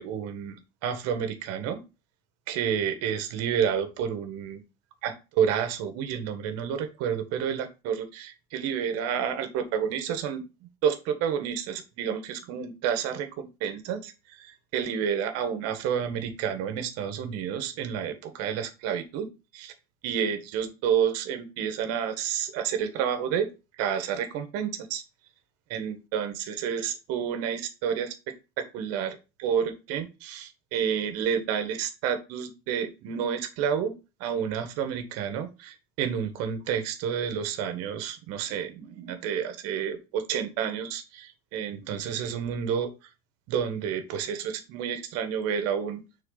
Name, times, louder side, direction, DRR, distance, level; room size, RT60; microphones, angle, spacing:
voice 1, 0.0-1.8 2.5-4.6 5.0-10.4 10.8-19.7 20.0-23.5 23.8-25.0 25.7-33.9 34.2-42.9 43.5-46.0, right 8 dB, 50° right, 9 dB, 1.7 m, -30 dB
6.7 x 4.4 x 4.1 m, 0.28 s
supercardioid pair, 145°, 31 cm